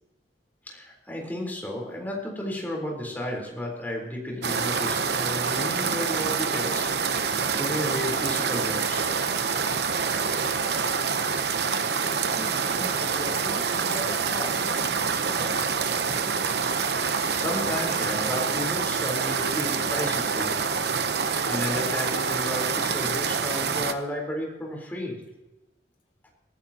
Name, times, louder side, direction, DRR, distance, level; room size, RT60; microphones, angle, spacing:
voice 1, 0.7-9.1 17.1-20.6 21.2-25.2, left 1 dB, 10° left, -1 dB, 3.9 m, -33 dB
sound 1, 4.4-23.9, right 5 dB, 70° right, 0.9 m, -26 dB
voice 2, 12.4-16.4, left 1 dB, 30° left, -2 dB, 2.2 m, -39 dB
22.5 x 15.0 x 3.0 m, 1.0 s
head